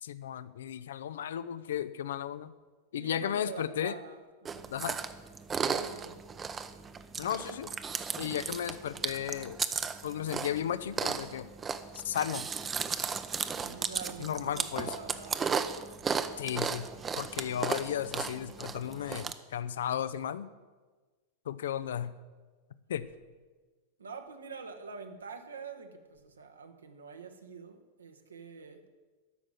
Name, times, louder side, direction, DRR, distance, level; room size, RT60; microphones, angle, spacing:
voice 1, 0.0-2.5 2.9-3.9 4.7-5.0 7.2-7.7 8.2-9.6 10.0-11.5 11.9-12.5 14.2-14.9 16.4-16.9 17.2-20.5 21.5-22.1 22.9-23.1, left 10 dB, 60° left, 14 dB, 0.5 m, -34 dB
voice 2, 3.0-4.7 5.7-6.2 13.6-15.6 24.0-28.8, right 5 dB, 70° right, 5 dB, 1.3 m, -45 dB
Chewing mastication, 4.4-19.3, right 6 dB, 20° right, 0.7 m, -35 dB
12.5 x 6.2 x 8.9 m, 1.3 s
figure-of-eight pair, 90°, 0 cm